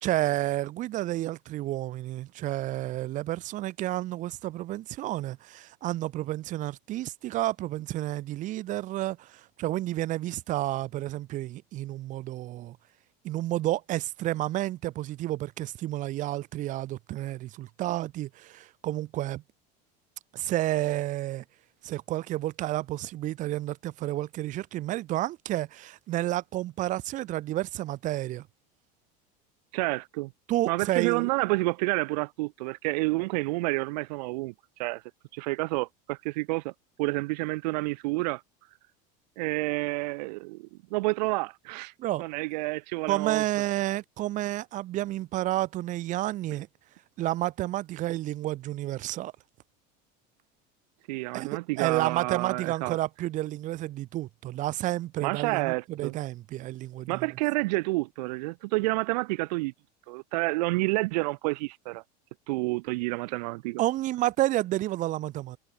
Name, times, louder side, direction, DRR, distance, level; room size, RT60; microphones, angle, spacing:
voice 1, 0.0-12.8 13.2-19.4 20.3-21.4 21.8-28.5 30.5-31.3 42.0-42.2 43.1-46.7 47.2-49.3 51.3-57.2 63.8-65.6, right 15 dB, 35° right, 1.1 m, -30 dB
voice 2, 29.7-30.3 30.7-34.5 34.8-35.0 35.3-36.7 37.0-38.4 39.4-41.9 42.2-43.4 51.1-53.0 55.2-56.1 57.1-59.7 60.1-62.0 62.5-63.8, right 24 dB, 75° right, 0.8 m, -29 dB
supercardioid pair, 150°, 21 cm